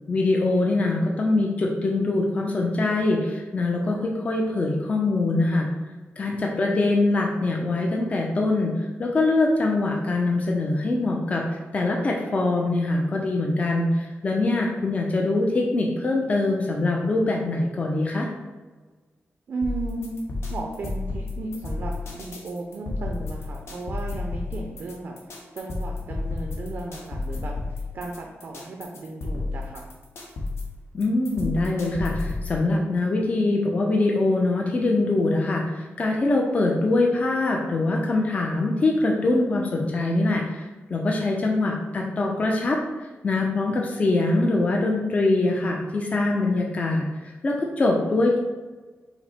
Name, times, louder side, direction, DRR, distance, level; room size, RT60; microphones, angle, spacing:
voice 1, 0.1-5.7 6.2-18.3 30.9-48.4, left 2 dB, 30° left, 0 dB, 0.4 m, -23 dB
voice 2, 19.5-20.2 20.5-29.8, right 3 dB, 55° right, 1 dB, 0.5 m, -35 dB
sound 1, 19.6-32.6, left 3 dB, 75° left, 0.9 m, -32 dB
5.6 x 2.0 x 4.2 m, 1.3 s
wide cardioid pair, 165°, 5 cm